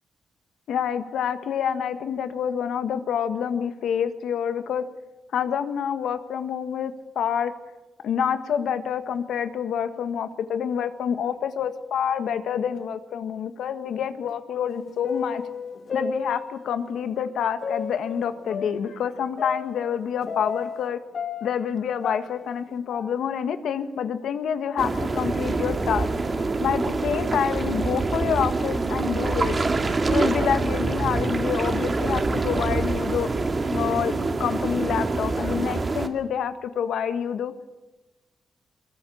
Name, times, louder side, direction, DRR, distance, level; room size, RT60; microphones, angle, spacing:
voice 1, 0.7-4.8 5.3-7.5 8.0-15.4 15.9-21.0 21.4-26.1 26.6-29.6 30.1-33.3 33.7-34.1 34.4-37.5, left 8 dB, 90° left, 10 dB, 1.7 m, -27 dB
sound 1, 14.7-16.9 17.6-20.9 21.1-23.5 23.8-23.9 24.6-24.7 25.5-25.7 26.4-26.5 27.3-27.6, left 5 dB, 60° left, 2.0 m, -33 dB
sound 2, 24.8-36.1, right 3 dB, 30° right, 2.4 m, -25 dB
22.5 x 22.5 x 7.2 m, 1.1 s
cardioid pair, 110°, 0 cm